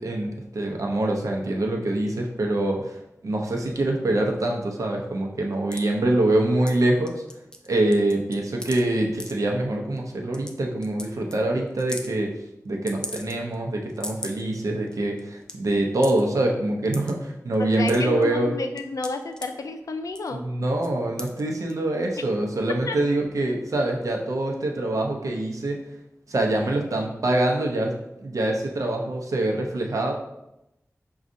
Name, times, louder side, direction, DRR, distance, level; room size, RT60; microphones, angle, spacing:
voice 1, 0.0-3.0 3.2-7.2 7.7-12.3 12.6-18.5 20.3-25.8 26.3-27.9 28.2-30.1, right 1 dB, 80° right, 1 dB, 0.7 m, -25 dB
sound 1, 5.7-5.8 6.7-6.8 7.1-7.7 7.9-8.8 9.2-9.3 10.0-10.1 10.3-10.5 10.8-11.1 11.3-11.4 11.8-12.1 12.9-13.5 13.9-14.4 14.9-15.0 15.2-15.5 16.0-16.2 16.9-17.1 17.5-18.2 18.8-19.5 20.1-20.4 20.8-20.9 21.2-21.4 21.7-21.8, left 1 dB, 15° left, 0.4 m, -36 dB
voice 2, 17.6-20.4 22.2-22.3 22.9-23.0, left 3 dB, 85° left, 7 dB, 0.4 m, -31 dB
6.1 x 2.3 x 2.7 m, 0.86 s
wide cardioid pair, 60°, 6 cm